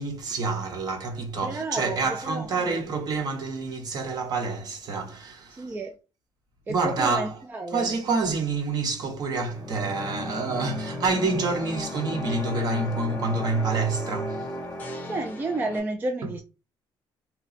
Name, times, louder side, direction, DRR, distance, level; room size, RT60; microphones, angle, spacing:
voice 1, 0.0-5.7 6.7-7.3 7.7-14.5, right 3 dB, 50° right, 0.9 m, -28 dB
voice 2, 1.4-2.8 5.5-5.9 6.7-8.0 15.0-16.4, right 2 dB, 20° right, 0.3 m, -31 dB
sound 1, 9.4-15.8, left 1 dB, 20° left, 0.6 m, -35 dB
2.9 x 2.2 x 4.0 m
cardioid pair, 155°, 9 cm